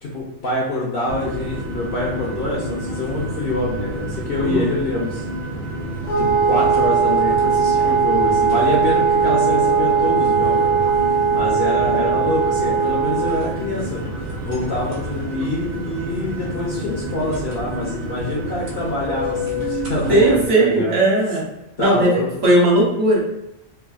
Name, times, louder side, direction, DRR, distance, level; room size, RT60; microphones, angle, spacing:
voice 1, 0.0-5.2 6.2-10.8 11.3-14.0 14.4-20.9 21.8-22.3, left 1 dB, 60° left, -3 dB, 0.6 m, -25 dB
sound 1, 1.1-20.5, right 1 dB, 55° right, 0.6 m, -29 dB
Wind instrument woodwind instrument, 6.1-13.5, right 6 dB, 80° left, 1.0 m, -19 dB
voice 2, 20.1-21.4 21.8-23.2, right 1 dB, 70° right, -4 dB, 1.3 m, -17 dB
3.2 x 2.2 x 2.3 m, 0.90 s
omnidirectional pair, 1.4 m